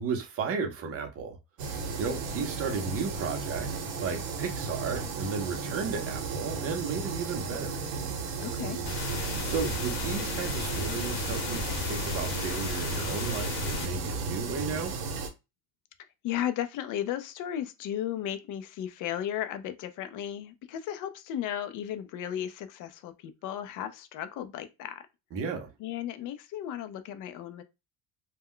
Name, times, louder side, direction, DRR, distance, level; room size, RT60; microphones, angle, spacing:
voice 1, 0.0-1.4 2.0-7.8 9.4-14.9 25.3-25.7, right 5 dB, 35° right, 0.7 m, -34 dB
sound 1, 1.6-15.3, right 4 dB, 65° right, 0.9 m, -34 dB
voice 2, 8.4-8.8 16.2-25.0 25.8-27.6, left 10 dB, 50° left, 0.5 m, -35 dB
sound 2, 8.9-13.9, left 3 dB, 80° left, 0.9 m, -34 dB
2.2 x 2.1 x 3.6 m
cardioid pair, 135°, 41 cm